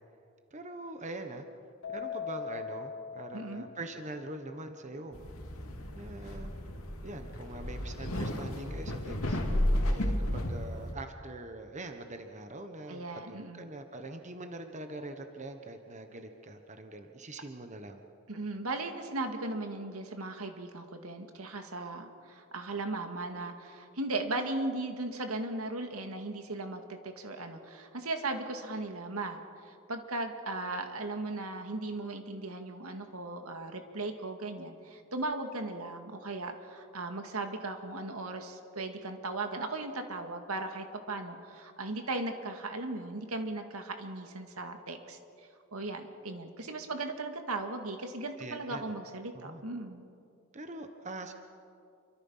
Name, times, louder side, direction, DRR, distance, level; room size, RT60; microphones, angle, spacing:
voice 1, 0.5-1.4 1.9-5.2 5.9-6.5 7.0-9.4 9.8-18.0 48.4-48.8 49.3-49.6 50.5-51.3, right 2 dB, 35° right, 6 dB, 1.3 m, -43 dB
Keyboard (musical), 1.8-4.3, left 7 dB, 65° left, 2.1 m, -40 dB
voice 2, 3.3-3.6 12.9-13.7 18.3-45.2 45.7-50.0, right 2 dB, 85° right, 5 dB, 2.1 m, -37 dB
sound 1, 5.1-10.9, left 1 dB, 80° left, 2.8 m, -33 dB
28.0 x 24.5 x 5.8 m, 2.5 s
head